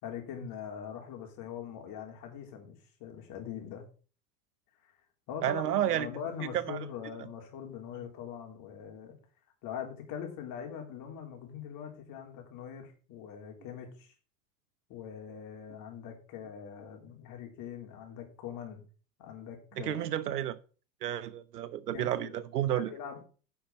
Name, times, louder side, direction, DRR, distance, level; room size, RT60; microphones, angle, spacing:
voice 1, 0.0-3.8 4.8-4.9 5.3-9.2 9.6-14.1 14.9-18.8 19.2-20.1 21.9-22.3 22.6-23.3, left 8 dB, 45° left, 3.6 m, -42 dB
voice 2, 5.4-6.1 6.5-6.8 19.8-20.6 21.0-22.9, right 11 dB, 85° right, 0.9 m, -31 dB
10.0 x 5.8 x 5.3 m
hypercardioid pair, 105°, 45 cm